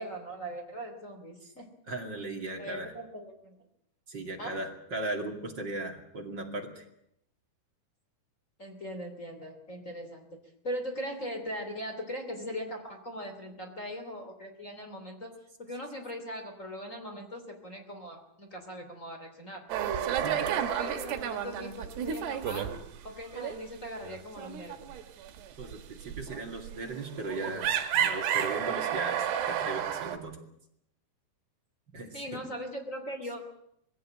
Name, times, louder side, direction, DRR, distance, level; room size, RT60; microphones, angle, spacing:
voice 1, 0.0-1.7 2.6-3.6 4.4-4.6 8.6-10.3 10.6-15.3 15.6-19.6 20.2-22.7 23.0-24.9 32.1-33.4, equal, 20° left, 4 dB, 2.7 m, -40 dB
voice 2, 1.9-2.9 4.1-6.8 20.1-20.5 25.6-30.4 31.9-32.4, right 2 dB, 35° right, 2 dB, 2.3 m, -37 dB
sound 1, 19.7-23.1 23.3-23.6 24.0-30.2, right 9 dB, 80° right, 3.5 m, -31 dB
21.5 x 17.0 x 8.8 m, 0.74 s
omnidirectional pair, 4.8 m